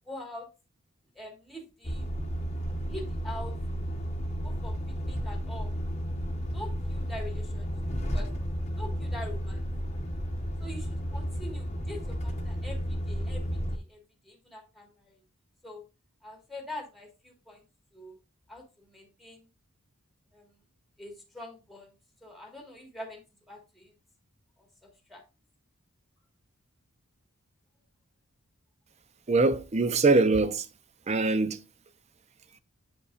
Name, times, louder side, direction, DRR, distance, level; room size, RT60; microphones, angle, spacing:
voice 1, 0.1-0.5 1.1-2.1 2.9-3.5 4.4-4.7 5.0-5.7 6.5-7.7 8.1-8.3 8.8-9.6 10.6-13.4 13.7-14.0 14.2-14.9 15.6-15.8 16.2-17.6 17.9-18.1 18.5-19.4 20.3-20.5 21.0-21.9 22.2-23.2 23.5-23.9 25.1-25.2, left 1 dB, ahead, 1.5 m, -43 dB
Truck, 1.8-13.8, equal, 30° left, 0.9 m, -33 dB
voice 2, 29.3-30.7 31.1-31.6, right 3 dB, 30° right, 0.5 m, -23 dB
8.1 x 5.3 x 2.4 m
head